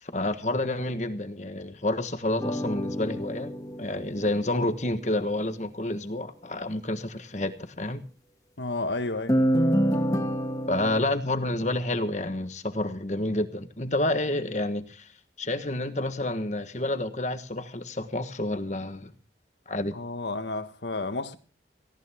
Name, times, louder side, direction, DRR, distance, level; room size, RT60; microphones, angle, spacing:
voice 1, 0.0-3.5 3.8-8.0 10.7-15.1 15.4-19.1 19.7-19.9, left 1 dB, 40° left, 1.4 m, -29 dB
sound 1, 2.4-5.0 9.3-11.0, equal, 20° left, 2.2 m, -27 dB
voice 2, 8.6-9.4 19.9-21.4, left 2 dB, 75° left, 1.4 m, -31 dB
18.0 x 17.0 x 3.6 m
head